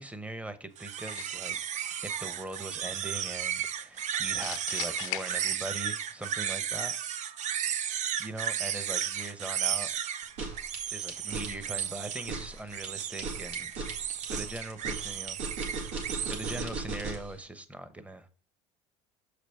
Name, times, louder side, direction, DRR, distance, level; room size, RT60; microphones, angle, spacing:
voice 1, 0.0-6.9 8.2-9.9 10.9-13.7 14.3-15.4 16.2-18.3, right 2 dB, 10° right, 1.0 m, -41 dB
sound 1, 0.8-16.6, right 9 dB, 50° right, 0.6 m, -34 dB
sound 2, 1.1-1.6 4.4-6.0, left 12 dB, 70° left, 0.9 m, -39 dB
sound 3, 10.2-17.3, right 3 dB, 80° right, 2.1 m, -37 dB
6.6 x 5.0 x 4.6 m
hypercardioid pair, 80°, 16 cm